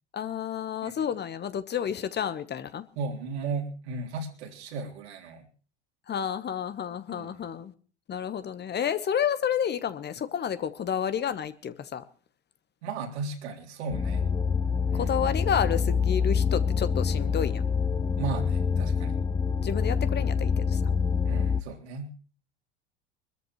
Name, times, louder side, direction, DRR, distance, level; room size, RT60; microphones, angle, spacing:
voice 1, 0.1-2.8 6.1-7.7 8.1-12.0 14.9-17.6 19.6-20.9, left 8 dB, 30° left, 1.2 m, -30 dB
voice 2, 3.0-5.5 7.1-7.5 12.8-14.2 14.9-15.1 18.2-19.2 21.2-22.1, right 4 dB, 70° right, 3.7 m, -35 dB
sound 1, 13.9-21.6, left 6 dB, 10° left, 0.6 m, -26 dB
24.5 x 13.5 x 3.1 m
figure-of-eight pair, 75°, 34 cm